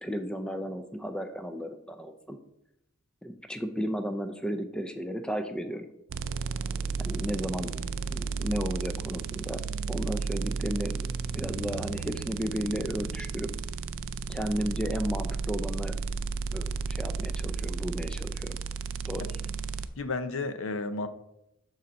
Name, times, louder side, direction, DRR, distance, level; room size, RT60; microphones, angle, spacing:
voice 1, 0.0-2.4 3.2-5.9 7.0-7.8 8.1-9.6 9.9-13.5 14.3-16.0 16.5-18.6 19.1-19.3, equal, 5° left, 8 dB, 0.4 m, -34 dB
sound 1, 6.1-19.9, right 5 dB, 60° right, 0.4 m, -33 dB
voice 2, 20.0-21.1, left 3 dB, 65° left, 10 dB, 0.6 m, -32 dB
6.9 x 4.0 x 6.4 m, 0.84 s
head